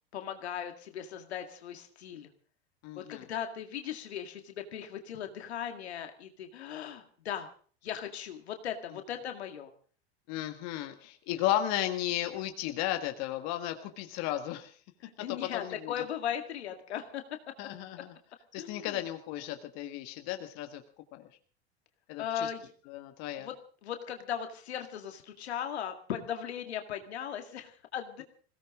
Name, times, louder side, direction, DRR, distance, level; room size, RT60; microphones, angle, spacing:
voice 1, 0.1-2.3 3.0-7.5 7.8-9.7 15.0-17.2 18.6-19.0 22.2-22.7 23.4-23.5 23.8-28.2, left 9 dB, 85° left, 6 dB, 2.1 m, -38 dB
voice 2, 2.8-3.2 10.3-14.7 15.5-15.9 17.6-18.1 18.5-20.8 21.1-21.3 22.1-22.5 22.9-23.5, left 13 dB, 55° left, 6 dB, 1.8 m, -34 dB
21.5 x 17.0 x 3.8 m, 0.43 s
hypercardioid pair, 95°, 32 cm